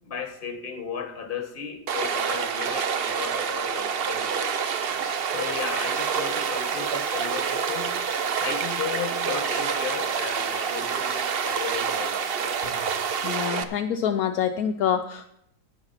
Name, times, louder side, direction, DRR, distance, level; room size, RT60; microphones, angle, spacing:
voice 1, 0.0-4.7 5.3-8.0 8.4-12.5, left 7 dB, 35° left, 7 dB, 1.4 m, -35 dB
Stream, 1.9-13.6, right 6 dB, 50° right, 0.7 m, -27 dB
sound 1, 4.6-13.5, right 7 dB, 80° right, 1.5 m, -46 dB
voice 2, 13.2-15.4, left 8 dB, 70° left, 7 dB, 1.0 m, -26 dB
9.7 x 9.5 x 5.6 m, 0.76 s
omnidirectional pair, 1.7 m